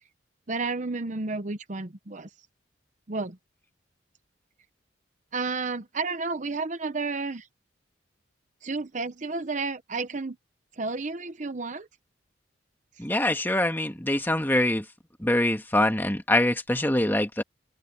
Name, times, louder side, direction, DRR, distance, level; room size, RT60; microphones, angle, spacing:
voice 1, 0.5-2.3 3.1-3.4 5.3-7.5 8.6-10.4 10.8-11.9, right 3 dB, 40° right, 0.8 m, -31 dB
voice 2, 13.0-14.9 15.2-17.4, left 1 dB, 10° left, 2.0 m, -24 dB
open air
head